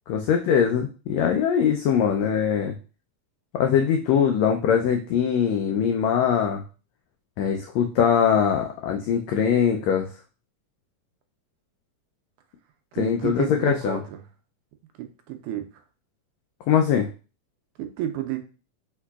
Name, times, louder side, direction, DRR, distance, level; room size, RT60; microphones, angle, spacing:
voice 1, 0.1-2.7 3.5-6.6 7.4-10.1 13.0-14.0 16.7-17.1, left 8 dB, 85° left, 3 dB, 1.5 m, -22 dB
voice 2, 13.0-14.2 15.0-15.7 17.8-18.4, right 12 dB, 80° right, 6 dB, 1.9 m, -31 dB
4.6 x 4.5 x 2.3 m, 0.35 s
omnidirectional pair, 3.6 m